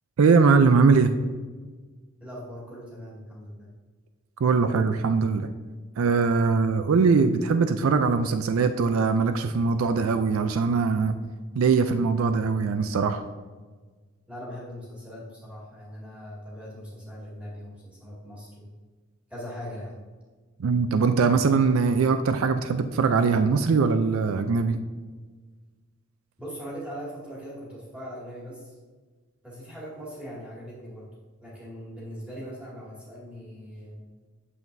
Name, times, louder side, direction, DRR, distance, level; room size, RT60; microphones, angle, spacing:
voice 1, 0.2-1.1 4.4-5.5 6.0-11.2 11.6-13.2 20.6-24.8, right 5 dB, 70° right, 9 dB, 0.4 m, -21 dB
voice 2, 2.2-3.7 14.3-18.7 19.3-19.9 26.4-28.8 29.4-31.1 31.4-34.0, equal, 5° right, -6 dB, 2.1 m, -40 dB
8.4 x 7.2 x 2.6 m, 1.4 s
head